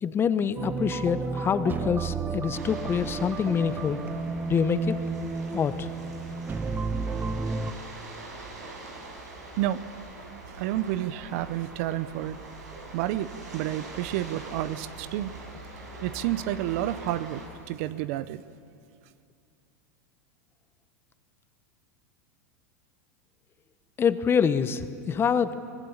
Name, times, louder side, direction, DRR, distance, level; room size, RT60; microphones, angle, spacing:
voice 1, 0.0-4.0 4.5-5.0 5.5-5.9 24.0-25.5, left 7 dB, 25° left, 12 dB, 1.1 m, -26 dB
sound 1, 0.6-7.7, right 4 dB, 20° right, 1.1 m, -32 dB
sound 2, 2.5-17.5, right 2 dB, 85° right, 6.1 m, -43 dB
voice 2, 10.5-12.4 12.9-15.3 16.0-18.4, right 13 dB, 60° right, 15 dB, 0.8 m, -30 dB
24.5 x 18.5 x 7.4 m, 2.4 s
hypercardioid pair, 100°, 9 cm